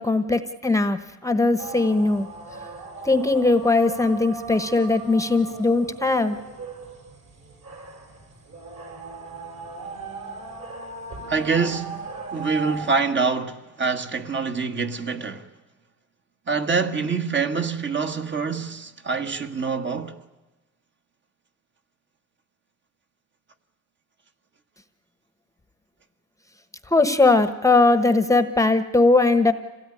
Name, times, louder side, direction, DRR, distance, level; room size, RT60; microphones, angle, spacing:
voice 1, 0.0-2.3 3.0-6.4 26.9-29.5, left 3 dB, 10° left, 1.1 m, -20 dB
sound 1, 1.6-12.9, right 4 dB, 55° right, 5.2 m, -38 dB
voice 2, 11.3-15.5 16.5-20.2, right 5 dB, 35° right, 1.6 m, -25 dB
26.5 x 17.0 x 9.9 m
cardioid pair, 125°, 32 cm